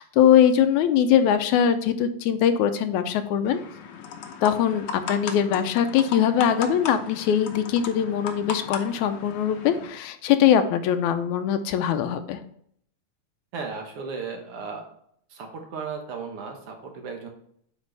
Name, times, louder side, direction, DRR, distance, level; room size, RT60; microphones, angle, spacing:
voice 1, 0.0-3.6 4.4-12.4, left 9 dB, 85° left, 9 dB, 2.0 m, -22 dB
sound 1, 3.5-9.9, left 6 dB, 70° left, 1.4 m, -37 dB
voice 2, 13.5-14.8 15.3-17.3, right 5 dB, 60° right, 3 dB, 1.9 m, -35 dB
8.2 x 5.3 x 3.3 m, 0.66 s
omnidirectional pair, 3.4 m